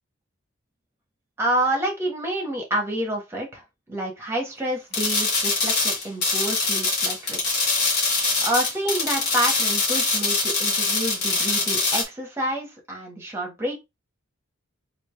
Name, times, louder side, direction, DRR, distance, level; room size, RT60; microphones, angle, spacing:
voice 1, 1.4-7.6 8.4-13.7, right 1 dB, 10° right, 1.0 m, -28 dB
sound 1, 4.9-12.0, left 3 dB, 50° left, 1.4 m, -23 dB
3.3 x 2.6 x 3.2 m
head